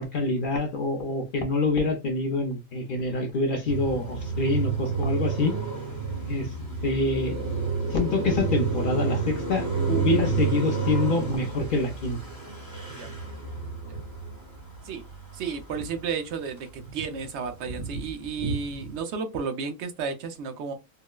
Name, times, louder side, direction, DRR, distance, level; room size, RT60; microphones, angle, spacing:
voice 1, 0.0-5.6 6.3-6.5 6.8-7.4 7.9-12.2, left 2 dB, 55° left, 0.6 m, -26 dB
Car passing by, 3.7-16.1 16.5-19.0, right 5 dB, 25° right, 1.0 m, -30 dB
voice 2, 15.3-20.7, right 5 dB, 65° right, 0.8 m, -33 dB
3.7 x 2.0 x 2.2 m
omnidirectional pair, 1.4 m